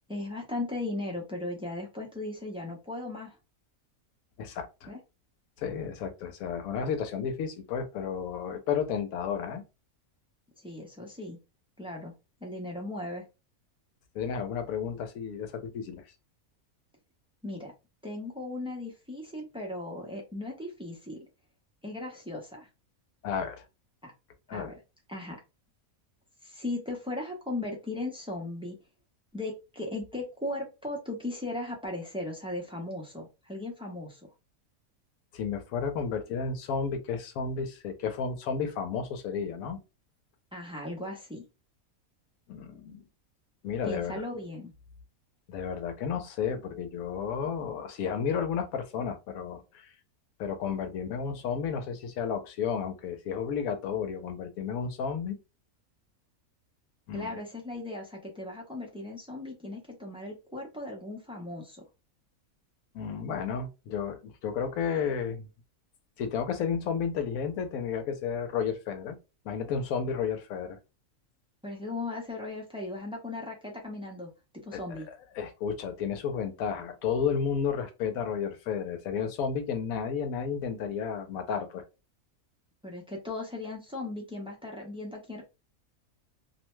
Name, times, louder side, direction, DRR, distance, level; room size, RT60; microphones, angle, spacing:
voice 1, 0.1-3.4 4.9-5.0 10.6-11.4 11.8-12.1 12.4-13.2 17.4-17.7 18.0-21.3 21.8-22.7 24.0-24.1 24.5-24.8 25.1-25.4 26.4-28.7 29.3-34.2 40.5-41.4 43.8-44.7 57.1-61.8 71.6-75.1 82.8-85.4, left 2 dB, 10° right, 0.3 m, -37 dB
voice 2, 4.4-4.9 5.6-9.6 14.1-16.0 23.2-23.6 24.5-24.7 35.3-39.8 42.5-43.0 43.6-44.2 45.5-49.9 50.4-55.4 57.1-57.4 62.9-65.5 66.2-69.2 69.4-70.8 74.7-74.8 75.3-81.8, left 6 dB, 80° left, 1.0 m, -32 dB
2.6 x 2.1 x 3.1 m
omnidirectional pair, 1.5 m